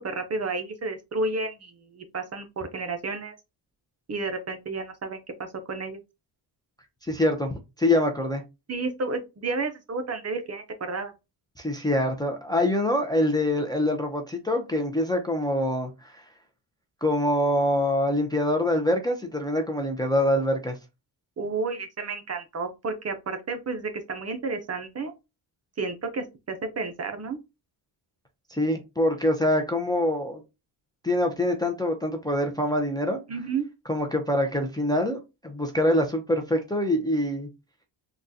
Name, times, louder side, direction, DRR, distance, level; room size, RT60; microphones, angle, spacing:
voice 1, 0.0-3.3 4.1-6.0 8.7-11.1 21.4-25.1 25.8-27.4 33.3-33.6, right 3 dB, 35° right, 0.6 m, -31 dB
voice 2, 7.0-7.5 7.8-8.4 11.6-16.2 17.0-20.8 28.5-30.4 31.0-33.2 33.9-37.5, left 1 dB, 10° left, 0.5 m, -25 dB
3.7 x 2.3 x 2.6 m
cardioid pair, 100°, 45 cm